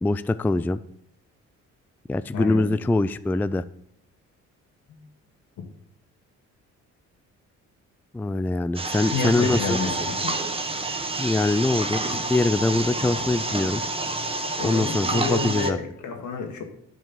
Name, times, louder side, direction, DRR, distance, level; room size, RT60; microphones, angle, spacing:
voice 1, 0.0-0.8 2.1-3.6 8.1-9.8 11.2-12.0 12.3-13.8 14.6-15.8, left 2 dB, 5° left, 14 dB, 0.3 m, -23 dB
voice 2, 2.3-2.8 4.9-5.0 9.1-10.3 14.6-16.6, left 5 dB, 70° left, 4 dB, 2.2 m, -29 dB
sound 1, 8.7-15.7, right 2 dB, 20° right, 1.3 m, -28 dB
11.0 x 5.2 x 7.3 m, 0.73 s
cardioid pair, 90°, 30 cm